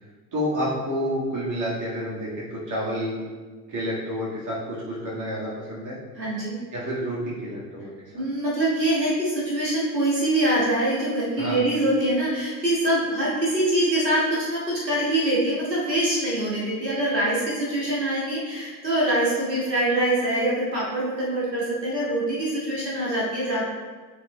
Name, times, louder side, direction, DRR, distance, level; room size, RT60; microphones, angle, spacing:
voice 1, 0.3-3.2 3.7-6.0 6.7-8.2 11.4-11.6, equal, 40° right, -6 dB, 1.9 m, -29 dB
voice 2, 6.2-6.6 8.1-23.6, right 1 dB, 85° right, -7 dB, 1.9 m, -24 dB
10.0 x 4.1 x 2.3 m, 1.4 s
figure-of-eight pair, 60°, 49 cm